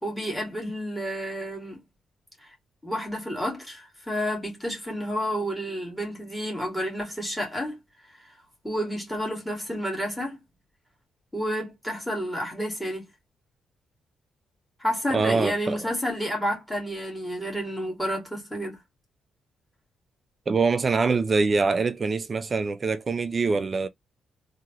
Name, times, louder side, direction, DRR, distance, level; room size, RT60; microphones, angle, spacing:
voice 1, 0.0-1.8 2.8-7.8 8.6-10.4 11.3-13.0 14.8-18.8, equal, 5° left, 1.9 m, -30 dB
voice 2, 15.1-15.8 20.5-23.9, right 4 dB, 25° right, 0.4 m, -24 dB
3.6 x 2.8 x 2.9 m
cardioid pair, 160°, 0 cm